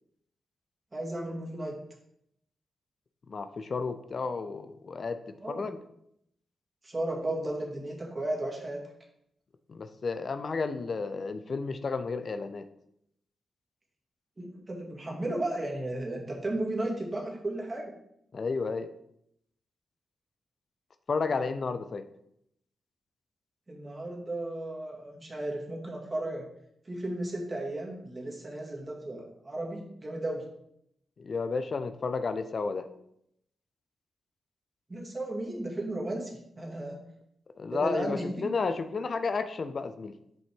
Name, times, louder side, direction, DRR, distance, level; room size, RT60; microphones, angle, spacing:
voice 1, 0.9-1.8 5.4-5.7 6.8-8.8 14.4-17.9 23.7-26.4 26.9-30.5 34.9-37.0 37.7-38.5, right 1 dB, 30° right, -1 dB, 2.0 m, -34 dB
voice 2, 3.3-5.2 5.5-5.8 9.7-12.7 18.3-18.9 21.1-22.1 31.2-32.9 37.6-40.1, left 4 dB, 55° left, 11 dB, 0.4 m, -32 dB
5.4 x 5.3 x 3.6 m, 0.75 s
supercardioid pair, 45°, 0 cm